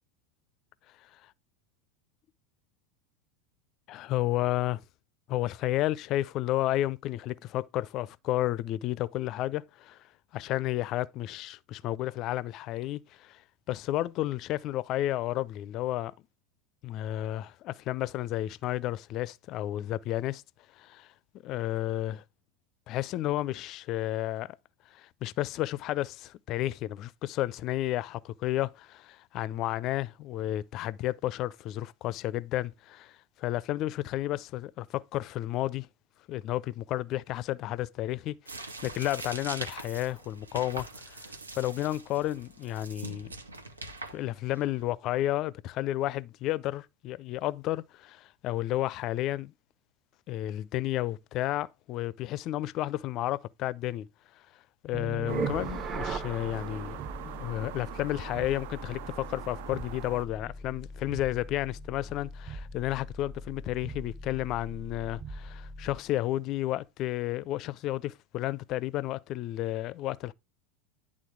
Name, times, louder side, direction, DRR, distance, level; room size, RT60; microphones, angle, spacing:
voice 1, 3.9-4.8 5.3-10.0 10.3-13.4 13.7-16.1 16.8-20.4 20.8-21.1 21.4-22.2 22.9-24.6 24.9-35.9 36.3-43.3 44.1-49.5 50.3-54.1 54.8-57.0 57.2-70.3, left 15 dB, 45° left, 0.4 m, -32 dB
sound 1, 38.5-44.9, right 2 dB, 85° right, 1.0 m, -43 dB
sound 2, 54.9-66.1, right 3 dB, 30° right, 1.0 m, -39 dB
sound 3, 55.3-60.3, right 14 dB, 60° right, 0.4 m, -43 dB
10.5 x 3.7 x 4.7 m
figure-of-eight pair, 80°, 0 cm